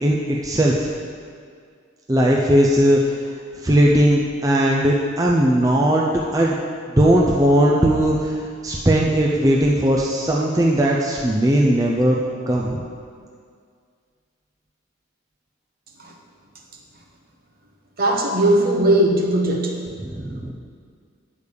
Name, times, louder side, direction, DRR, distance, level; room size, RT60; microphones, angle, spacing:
voice 1, 0.0-0.9 2.1-3.1 3.6-6.1 6.3-6.6 7.0-12.2 12.5-12.8 20.0-20.5, right 1 dB, 20° right, -2 dB, 0.5 m, -18 dB
voice 2, 18.0-19.8, right 1 dB, 50° right, 0 dB, 1.1 m, -18 dB
8.4 x 5.1 x 6.6 m, 2.1 s
head